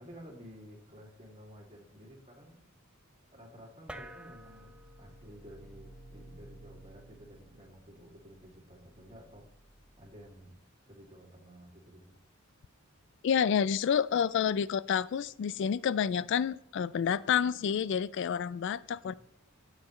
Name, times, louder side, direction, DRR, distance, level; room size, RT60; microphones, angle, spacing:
voice 1, 0.0-2.7 3.3-4.7 5.0-9.5 10.0-10.6 10.9-12.2 19.1-19.2, equal, 30° right, -1 dB, 2.5 m, -52 dB
sound 1, 3.9-10.6, right 1 dB, 5° right, 0.6 m, -52 dB
voice 2, 13.2-19.1, left 7 dB, 60° left, 18 dB, 0.3 m, -29 dB
17.0 x 6.5 x 3.1 m, 0.73 s
head